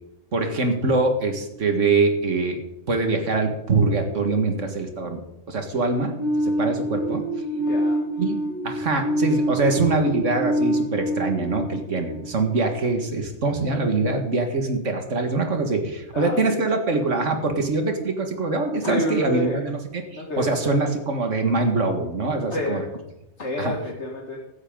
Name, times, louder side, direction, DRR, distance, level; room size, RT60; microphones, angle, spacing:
voice 1, 0.3-2.6 2.9-5.2 5.5-7.2 8.2-8.4 8.6-22.8 23.6-23.7, right 3 dB, 80° right, 5 dB, 2.1 m, -23 dB
sound 1, 6.2-12.9, equal, 20° right, 5.6 m, -26 dB
voice 2, 7.6-8.1 16.1-16.4 18.8-19.6 20.1-20.9 22.5-22.8 23.4-24.4, left 1 dB, 65° left, -1 dB, 2.1 m, -29 dB
16.0 x 12.5 x 3.8 m, 0.91 s
omnidirectional pair, 1.3 m